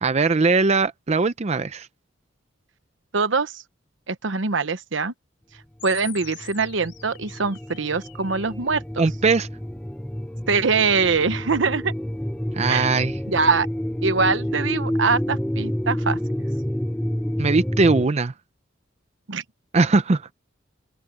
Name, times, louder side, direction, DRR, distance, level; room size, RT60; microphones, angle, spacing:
voice 1, 0.0-1.9 9.0-9.5 12.5-13.2 17.4-18.3 19.7-20.3, right 3 dB, 35° right, 0.5 m, -20 dB
voice 2, 3.1-3.6 4.1-5.1 5.8-9.0 10.5-11.9 12.7-13.0 13.3-13.7 14.0-16.2 19.3-19.4, right 4 dB, 75° right, 1.0 m, -23 dB
sound 1, 5.8-8.8, left 14 dB, 65° left, 3.6 m, -44 dB
sound 2, 6.1-18.1, equal, 5° left, 0.9 m, -29 dB
open air
head